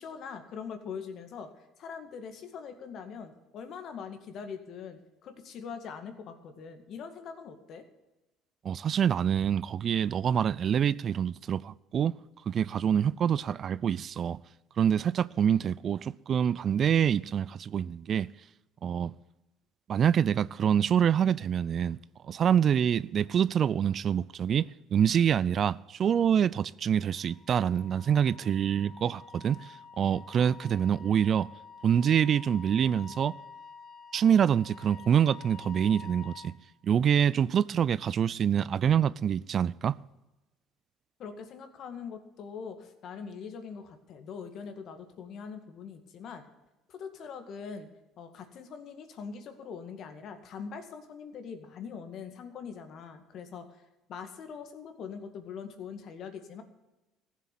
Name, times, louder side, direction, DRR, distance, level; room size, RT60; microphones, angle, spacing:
voice 1, 0.0-7.8 41.2-46.5 46.9-47.9 48.2-53.8 54.1-56.6, left 6 dB, 55° left, 2.0 m, -42 dB
voice 2, 8.6-12.1 12.5-14.4 14.8-18.3 18.8-19.1 19.9-22.0 22.2-31.5 31.8-33.3 34.1-36.5 36.8-40.0, right 8 dB, 45° right, 0.4 m, -26 dB
Wind instrument woodwind instrument, 27.1-36.5, left 5 dB, 40° left, 2.7 m, -49 dB
15.0 x 7.4 x 8.5 m
supercardioid pair, 85°, 0 cm